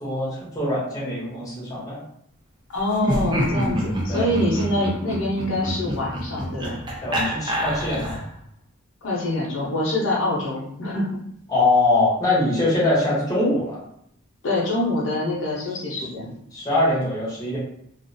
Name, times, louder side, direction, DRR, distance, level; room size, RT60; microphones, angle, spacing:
voice 1, 0.0-2.0 4.1-4.3 7.0-8.2 11.5-13.8 16.5-17.6, left 2 dB, 20° left, -7 dB, 0.9 m, -22 dB
voice 2, 2.7-6.8 9.0-11.2 14.4-16.3, left 1 dB, 65° left, -5 dB, 0.7 m, -25 dB
Laughter, 2.9-8.4, equal, 20° right, 0.5 m, -27 dB
2.5 x 2.2 x 2.6 m, 0.71 s
head